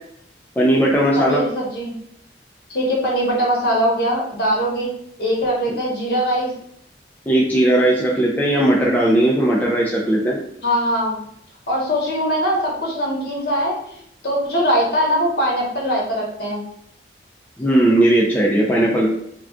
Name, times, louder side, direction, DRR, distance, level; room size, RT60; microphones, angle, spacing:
voice 1, 0.6-1.4 7.3-10.4 17.6-19.1, right 1 dB, 10° left, -4 dB, 0.4 m, -17 dB
voice 2, 1.1-1.9 2.7-4.9 5.2-6.5 10.6-11.2 11.7-16.6, equal, 60° left, -3 dB, 0.9 m, -21 dB
2.3 x 2.2 x 3.6 m, 0.70 s
head